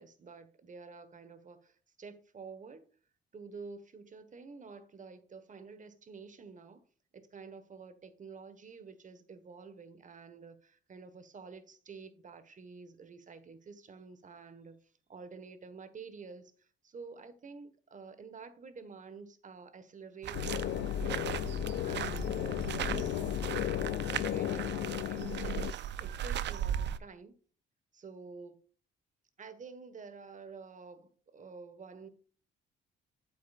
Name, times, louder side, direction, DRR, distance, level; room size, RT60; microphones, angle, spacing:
voice 1, 0.0-2.8 3.3-6.8 7.1-14.8 15.1-21.2 21.8-27.3 27.9-28.6 29.4-32.1, right 5 dB, 40° right, 1.4 m, -49 dB
sound 1, 20.2-27.0, right 10 dB, 60° right, 0.6 m, -38 dB
sound 2, 20.3-25.7, left 12 dB, 70° left, 0.5 m, -34 dB
9.0 x 7.7 x 2.5 m
cardioid pair, 90°, 20 cm